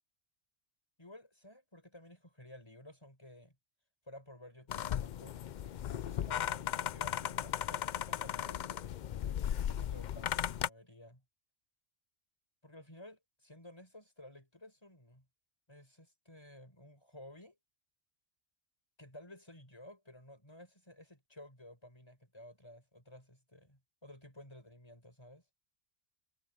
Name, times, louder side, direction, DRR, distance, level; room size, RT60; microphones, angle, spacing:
voice 1, 1.0-3.6 4.1-8.6 9.2-11.2 12.6-15.3 15.7-17.6 19.0-25.4, left 1 dB, 25° left, 4.8 m, -54 dB
sound 1, 4.7-10.7, left 10 dB, 60° left, 0.5 m, -36 dB
omnidirectional pair, 1.2 m